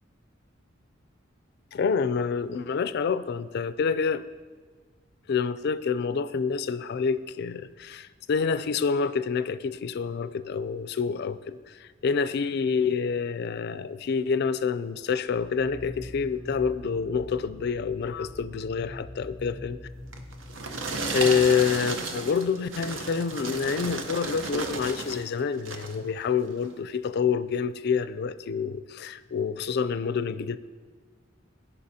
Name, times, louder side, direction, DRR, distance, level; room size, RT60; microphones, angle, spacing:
voice 1, 1.7-4.2 5.3-19.8 21.1-30.6, left 6 dB, 55° left, 13 dB, 0.4 m, -27 dB
sound 1, 15.3-22.6, left 1 dB, 5° right, 0.8 m, -44 dB
sound 2, 20.1-25.3 25.6-26.0 26.6-26.7, right 3 dB, 70° right, 0.8 m, -33 dB
15.5 x 5.5 x 2.8 m, 1.5 s
head